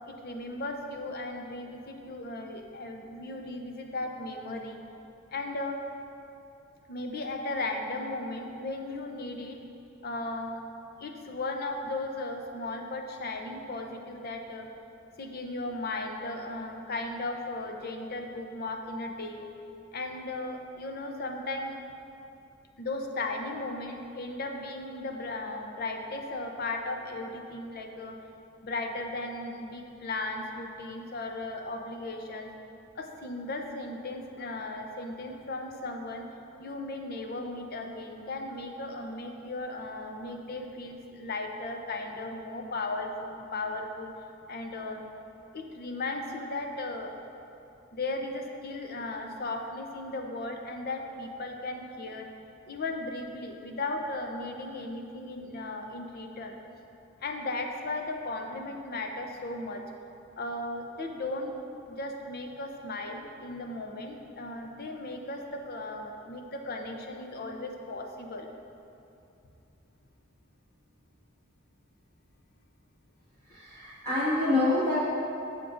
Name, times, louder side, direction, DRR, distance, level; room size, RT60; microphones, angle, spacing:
voice 1, 0.1-4.8 5.3-5.8 6.9-9.6 10.0-10.6 11.0-14.7 15.2-19.5 19.9-21.7 22.8-28.2 28.6-32.5 32.9-36.3 36.6-44.1 44.5-45.0 45.5-47.1 47.9-52.3 52.7-56.6 57.2-59.8 60.4-61.5 61.9-68.5, left 2 dB, 50° left, 3 dB, 0.7 m, -36 dB
voice 2, 73.5-75.0, left 2 dB, 15° left, -11 dB, 1.7 m, -26 dB
14.0 x 5.2 x 2.6 m, 2.7 s
head